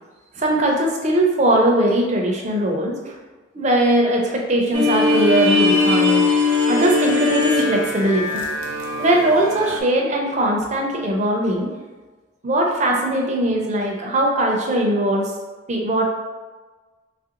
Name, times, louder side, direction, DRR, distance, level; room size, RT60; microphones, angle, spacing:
voice 1, 0.4-3.2 3.5-6.2 6.7-8.4 9.0-11.7 12.4-15.3 15.7-16.1, right 1 dB, 35° right, 0 dB, 0.4 m, -20 dB
sound 1, 4.7-9.8, left 3 dB, 85° right, 0.6 m, -20 dB
3.2 x 2.4 x 2.8 m, 1.3 s
head